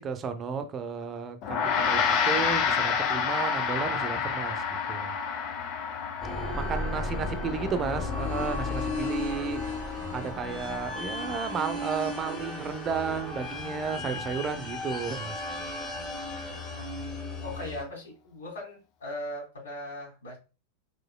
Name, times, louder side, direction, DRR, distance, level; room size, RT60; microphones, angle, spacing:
voice 1, 0.0-5.1 6.6-9.6 10.1-15.4, right 6 dB, 25° right, 0.6 m, -33 dB
Gong, 1.4-11.0, left 6 dB, 40° left, 0.7 m, -30 dB
sound 1, 6.2-17.8, left 2 dB, 20° left, 1.8 m, -34 dB
voice 2, 6.8-7.8 17.4-20.4, left 1 dB, 65° left, 2.8 m, -40 dB
4.8 x 4.5 x 2.3 m
figure-of-eight pair, 90°, 0 cm